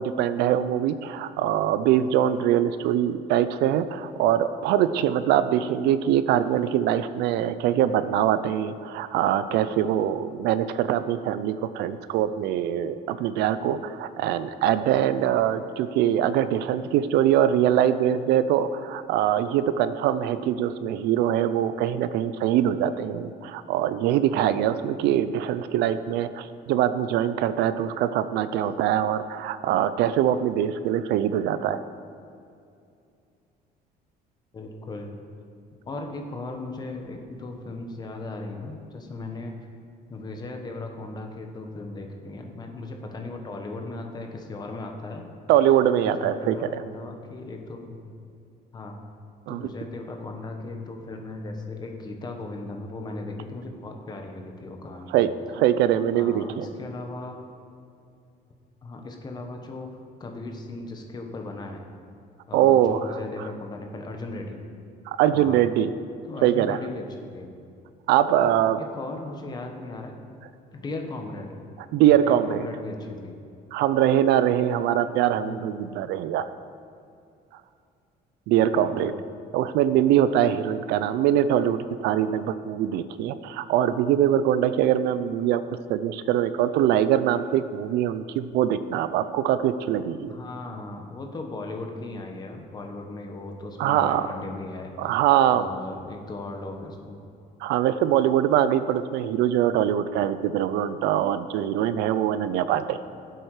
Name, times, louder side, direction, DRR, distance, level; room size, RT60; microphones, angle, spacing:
voice 1, 0.0-31.8 45.5-46.8 49.5-49.7 55.1-56.7 62.5-63.2 65.1-65.9 66.4-66.8 68.1-68.8 71.9-72.7 73.7-76.5 78.5-79.1 79.5-85.6 85.9-90.4 93.8-94.3 95.0-95.7 97.6-103.0, right 10 dB, 85° right, 13 dB, 0.6 m, -23 dB
voice 2, 34.5-35.2 35.8-39.6 40.1-45.2 45.8-48.0 48.7-49.0 49.5-55.1 56.1-57.4 58.8-61.9 62.5-64.6 65.3-65.6 66.3-67.5 68.4-70.1 70.7-71.5 72.1-73.4 75.3-75.8 78.6-79.2 90.2-95.2 95.5-97.2, left 2 dB, 25° left, 3 dB, 1.3 m, -37 dB
17.5 x 7.8 x 4.9 m, 2.5 s
cardioid pair, 165°, 17 cm